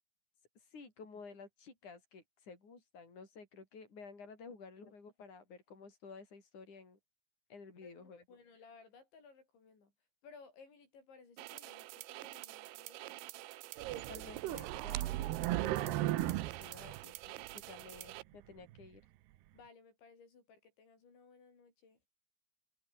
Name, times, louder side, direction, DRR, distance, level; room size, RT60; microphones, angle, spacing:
voice 1, 0.7-7.0 7.5-8.2 13.9-19.0, left 4 dB, 40° left, 8.7 m, -53 dB
voice 2, 7.8-9.9 10.2-13.1 19.5-22.1, left 5 dB, 80° left, 9.5 m, -59 dB
sound 1, 11.4-18.2, right 19 dB, 90° right, 3.1 m, -48 dB
sound 2, 13.8-17.5 18.0-18.1 18.7-18.8, right 16 dB, 70° right, 2.9 m, -36 dB
omnidirectional pair, 5.2 m